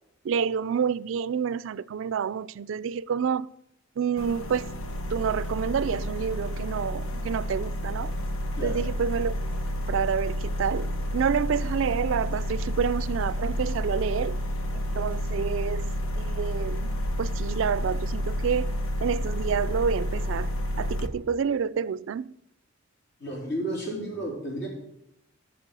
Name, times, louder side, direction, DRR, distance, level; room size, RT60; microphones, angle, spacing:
voice 1, 0.2-3.5 4.0-4.7 5.1-8.1 8.6-9.3 9.7-14.4 14.7-16.9 17.2-18.7 19.0-20.5 20.8-22.4, right 7 dB, 70° right, 0.3 m, -28 dB
sound 1, 4.2-21.1, equal, 85° left, 1.1 m, -30 dB
voice 2, 23.2-24.7, right 1 dB, 55° left, 3.8 m, -32 dB
13.5 x 6.0 x 6.8 m
head